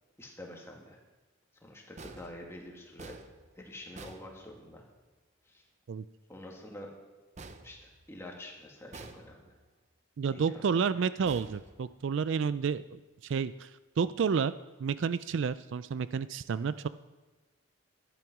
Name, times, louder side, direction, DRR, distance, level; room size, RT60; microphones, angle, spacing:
voice 1, 0.2-1.0 1.6-3.2 3.6-4.8 5.5-5.6 6.3-6.9 7.6-9.6 10.3-10.8, left 1 dB, 10° left, 0 dB, 2.0 m, -47 dB
sound 1, 2.0-5.0 7.4-8.4 8.9-9.7 11.2-12.3, right 3 dB, 35° right, 0.7 m, -50 dB
voice 2, 10.2-13.7 14.0-14.5 14.8-16.9, right 6 dB, 60° right, 15 dB, 0.3 m, -30 dB
12.0 x 10.5 x 6.1 m, 1.2 s
head